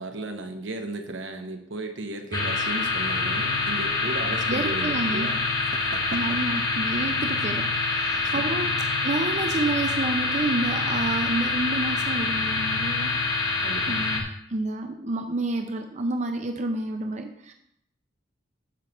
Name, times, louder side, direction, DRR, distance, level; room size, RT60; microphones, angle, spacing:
voice 1, 0.0-5.4 5.7-6.4 8.2-8.5 13.6-14.1, right 2 dB, 65° right, 5 dB, 1.1 m, -35 dB
sound 1, 2.3-14.2, left 3 dB, 20° left, 1.1 m, -26 dB
voice 2, 4.5-5.3 6.1-13.2 13.9-17.5, right 2 dB, 35° right, 4 dB, 0.6 m, -29 dB
10.0 x 3.4 x 7.1 m, 0.75 s
head